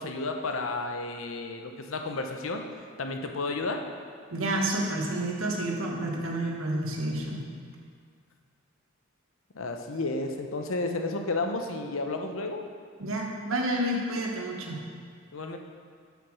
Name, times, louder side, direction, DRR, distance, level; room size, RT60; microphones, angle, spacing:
voice 1, 0.0-2.6 3.0-3.9 9.5-12.6 15.3-15.6, left 3 dB, 75° left, 4 dB, 0.8 m, -32 dB
voice 2, 4.3-7.4 13.0-14.8, right 1 dB, 80° right, 0 dB, 1.3 m, -29 dB
7.2 x 5.9 x 6.2 m, 2.1 s
head